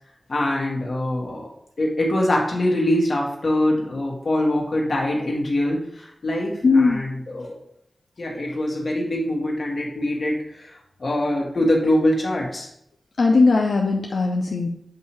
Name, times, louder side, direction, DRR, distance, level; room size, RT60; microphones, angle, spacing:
voice 1, 0.3-1.5 1.8-7.6 8.2-12.7, left 1 dB, 55° left, -1 dB, 1.5 m, -23 dB
voice 2, 6.6-7.0 13.2-14.7, left 3 dB, 90° left, 0 dB, 0.6 m, -18 dB
7.9 x 2.8 x 4.4 m, 0.74 s
wide cardioid pair, 110°, 0 cm